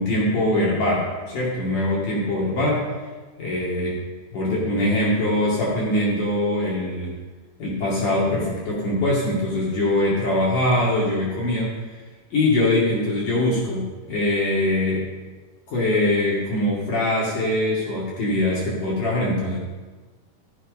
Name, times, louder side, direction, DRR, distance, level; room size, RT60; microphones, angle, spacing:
voice 1, 0.0-2.9 3.4-4.0 4.3-7.1 7.6-11.7 12.3-15.0 15.7-19.6, left 1 dB, 50° left, -6 dB, 3.3 m, -22 dB
14.0 x 9.0 x 5.3 m, 1.3 s
omnidirectional pair, 5.1 m